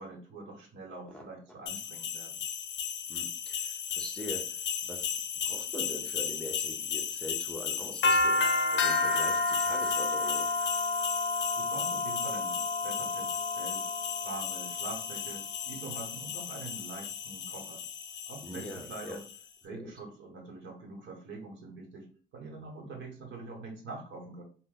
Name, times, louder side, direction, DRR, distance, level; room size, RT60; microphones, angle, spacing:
voice 1, 0.0-2.4 11.6-13.9 14.2-17.8 18.3-19.2 19.6-22.1 22.3-24.4, right 3 dB, 70° right, 1.1 m, -44 dB
voice 2, 1.1-1.6 3.1-10.5 18.4-19.2 19.7-19.9, equal, 5° left, 0.6 m, -43 dB
sound 1, 1.7-19.4, left 4 dB, 65° left, 0.6 m, -32 dB
2.6 x 2.1 x 3.8 m
cardioid pair, 90°, 20 cm